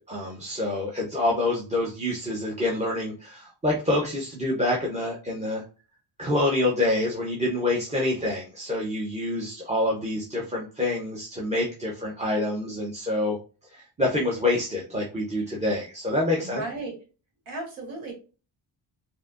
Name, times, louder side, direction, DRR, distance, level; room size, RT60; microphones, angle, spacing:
voice 1, 0.1-5.6 6.2-13.4 13.7-16.6, left 1 dB, 15° right, -3 dB, 0.7 m, -27 dB
voice 2, 16.4-16.9 17.4-18.1, right 3 dB, 80° right, 0 dB, 1.8 m, -35 dB
4.7 x 2.7 x 2.4 m, 0.35 s
wide cardioid pair, 140°, 46 cm